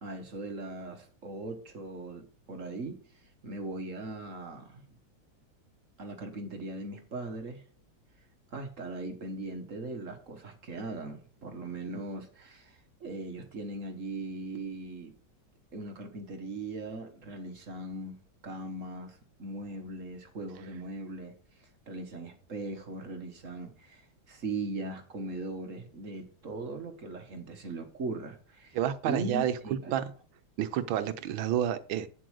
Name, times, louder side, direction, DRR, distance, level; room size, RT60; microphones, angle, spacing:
voice 1, 0.0-3.0 3.4-5.0 6.0-7.6 8.5-15.1 15.7-28.8 29.0-30.0, right 2 dB, 45° right, 1.5 m, -39 dB
voice 2, 28.7-29.5 29.9-30.1 30.6-32.1, right 10 dB, 90° right, 1.5 m, -29 dB
8.4 x 7.7 x 4.8 m
omnidirectional pair, 2.1 m